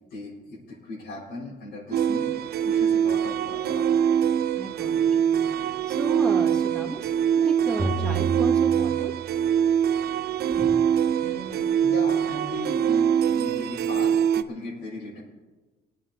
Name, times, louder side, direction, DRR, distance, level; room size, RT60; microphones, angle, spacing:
voice 1, 0.1-4.1 11.2-15.2, left 2 dB, 85° left, -10 dB, 5.6 m, -37 dB
sound 1, 1.9-14.4, right 8 dB, 65° right, 0.7 m, -23 dB
voice 2, 4.6-9.1 10.5-10.8, right 1 dB, 5° left, 0 dB, 2.2 m, -35 dB
sound 2, 7.8-9.7, right 4 dB, 20° right, 2.1 m, -30 dB
23.0 x 8.9 x 4.4 m, 1.2 s
cardioid pair, 145°, 18 cm